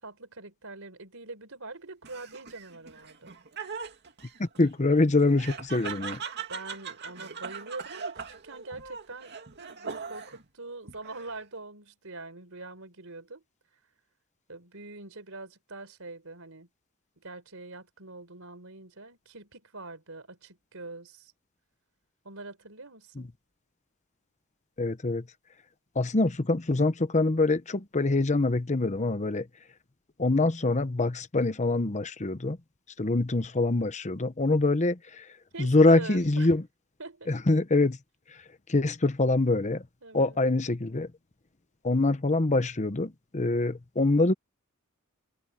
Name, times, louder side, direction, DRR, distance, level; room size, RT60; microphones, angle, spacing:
voice 1, 0.0-3.3 6.5-9.4 9.7-13.4 14.5-16.7 17.2-21.3 22.2-23.3 35.5-36.5 37.0-37.4 40.0-40.4, right 3 dB, 65° right, 4.9 m, -43 dB
Laughter, 2.0-10.5 10.9-11.6, right 6 dB, 50° right, 2.5 m, -40 dB
voice 2, 4.4-6.2 23.2-23.3 24.8-25.2 25.9-29.5 30.2-32.6 33.0-35.3 35.6-36.6 37.3-38.0 38.7-39.8 40.1-41.1 41.8-44.3, left 2 dB, 35° left, 0.9 m, -25 dB
head